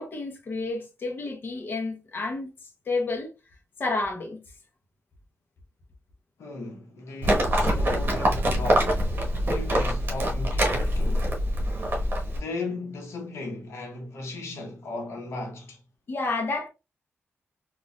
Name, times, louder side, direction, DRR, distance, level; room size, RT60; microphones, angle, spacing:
voice 1, 0.0-2.5 2.9-3.3 3.8-4.4 16.1-16.7, left 3 dB, 45° left, 0.8 m, -30 dB
voice 2, 6.4-9.0 9.4-11.4 12.4-15.8, left 2 dB, 80° left, 1.0 m, -36 dB
Livestock farm animals working animals, 7.2-12.4, equal, 45° right, 1.0 m, -24 dB
4.1 x 2.4 x 2.3 m
wide cardioid pair, 140°, 5 cm